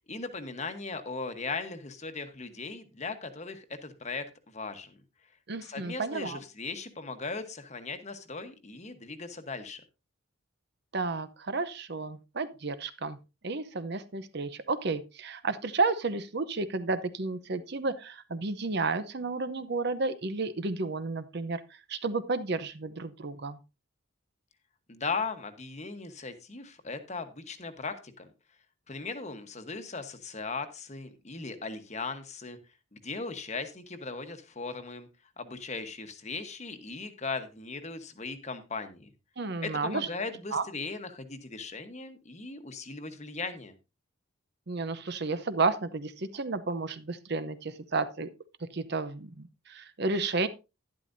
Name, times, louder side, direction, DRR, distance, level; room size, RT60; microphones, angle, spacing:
voice 1, 0.1-4.3 4.5-5.0 5.6-9.8 24.9-28.3 28.9-32.6 32.9-35.1 35.4-39.1 39.6-43.7, left 4 dB, 35° left, 8 dB, 1.1 m, -38 dB
voice 2, 5.5-6.4 10.9-13.2 13.4-23.6 39.4-40.1 40.5-40.6 44.7-48.3 48.6-50.5, right 3 dB, 50° right, 12 dB, 0.7 m, -32 dB
11.5 x 11.0 x 2.6 m, 0.27 s
head